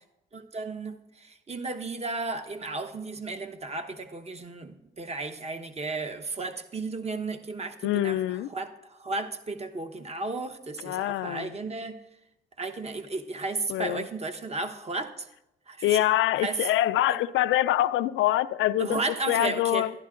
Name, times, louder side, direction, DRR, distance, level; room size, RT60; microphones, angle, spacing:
voice 1, 0.3-8.2 8.5-12.0 12.6-15.3 15.7-16.0 16.4-16.6 17.1-17.2 18.8-19.9, right 3 dB, 30° right, 1.0 m, -34 dB
voice 2, 7.8-8.5 10.8-11.6 13.7-14.1 15.8-19.0 19.3-19.9, left 14 dB, 80° left, 0.4 m, -25 dB
12.0 x 10.5 x 3.8 m
cardioid pair, 90°, 20 cm